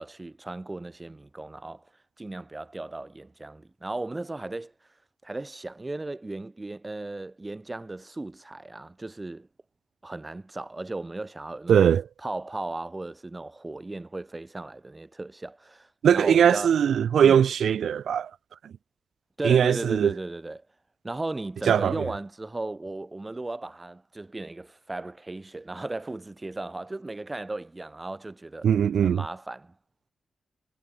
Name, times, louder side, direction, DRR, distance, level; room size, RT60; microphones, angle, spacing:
voice 1, 0.0-1.9 2.2-4.7 5.2-9.5 10.0-11.9 12.2-16.9 19.4-20.6 21.0-28.7 29.0-29.8, right 2 dB, 20° right, 3.6 m, -36 dB
voice 2, 11.7-12.0 16.0-18.3 19.4-20.1 21.7-21.9 28.6-29.2, right 8 dB, 85° right, 0.4 m, -20 dB
wide cardioid pair, 120°, 0 cm